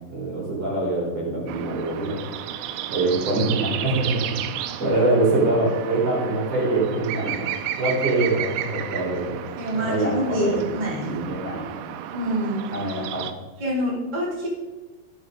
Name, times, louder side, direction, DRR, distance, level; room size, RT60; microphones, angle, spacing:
voice 1, 0.0-2.2 2.9-7.5 7.8-9.4 9.7-10.1 10.4-10.6 11.1-11.6 12.7-13.2, right 2 dB, 35° right, -4 dB, 4.0 m, -24 dB
sound 1, 1.5-13.3, right 11 dB, 85° right, 2.9 m, -33 dB
voice 2, 9.6-11.1 12.1-12.6 13.6-14.5, equal, 15° right, -5 dB, 1.6 m, -26 dB
14.5 x 6.6 x 5.0 m, 1.2 s
omnidirectional pair, 4.9 m